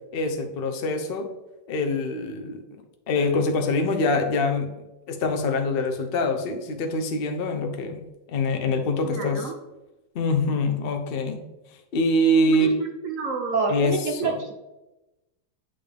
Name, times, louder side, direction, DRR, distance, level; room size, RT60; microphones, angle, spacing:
voice 1, 0.1-1.3 1.7-2.6 3.1-4.7 5.1-8.0 8.3-9.5 10.1-11.4 11.9-12.7 13.7-14.4, left 2 dB, 75° left, 4 dB, 0.5 m, -24 dB
voice 2, 9.0-9.5 12.5-14.6, right 4 dB, 75° right, 1 dB, 0.7 m, -28 dB
8.6 x 3.6 x 3.4 m, 0.99 s
omnidirectional pair, 2.1 m